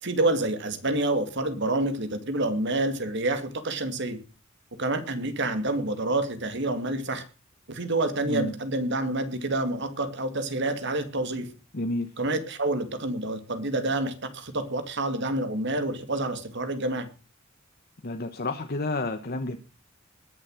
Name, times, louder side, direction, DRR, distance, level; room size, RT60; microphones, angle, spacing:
voice 1, 0.0-4.2 4.8-7.2 7.7-11.5 12.2-17.1, right 2 dB, 60° right, 9 dB, 2.3 m, -28 dB
voice 2, 8.2-8.5 11.7-12.1 18.0-19.6, left 2 dB, 50° left, 6 dB, 1.2 m, -30 dB
20.0 x 7.4 x 6.4 m, 0.35 s
head